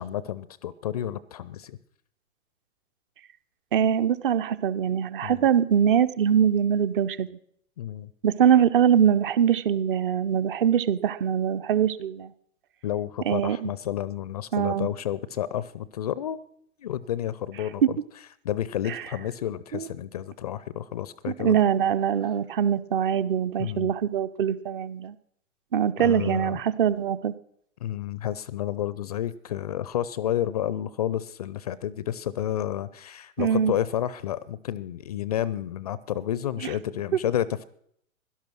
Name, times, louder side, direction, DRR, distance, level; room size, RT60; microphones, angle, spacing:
voice 1, 0.0-1.8 5.2-5.4 7.8-8.1 12.8-16.4 16.8-18.0 18.4-21.6 23.6-23.9 26.0-26.6 27.8-37.6, left 11 dB, 30° left, 18 dB, 0.5 m, -30 dB
voice 2, 3.7-7.3 8.2-12.3 13.3-13.7 14.5-14.9 17.8-17.9 18.9-19.0 19.7-19.9 21.4-25.1 25.7-27.3 33.4-33.7, right 8 dB, 40° right, 14 dB, 0.9 m, -23 dB
17.0 x 12.0 x 6.1 m, 0.69 s
figure-of-eight pair, 115°, 40 cm